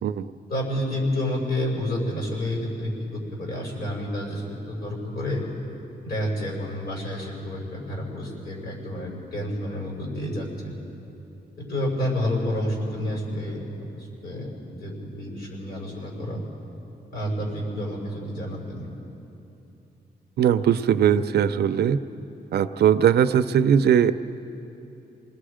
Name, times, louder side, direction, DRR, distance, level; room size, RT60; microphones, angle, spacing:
voice 1, 0.5-5.5 6.0-10.7 11.6-13.6 13.9-16.4 17.1-18.9, left 1 dB, 60° left, -3 dB, 6.4 m, -29 dB
voice 2, 20.4-22.0 22.5-24.1, right 9 dB, 75° right, 11 dB, 0.6 m, -20 dB
28.0 x 19.5 x 5.0 m, 2.9 s
wide cardioid pair, 165°, 17 cm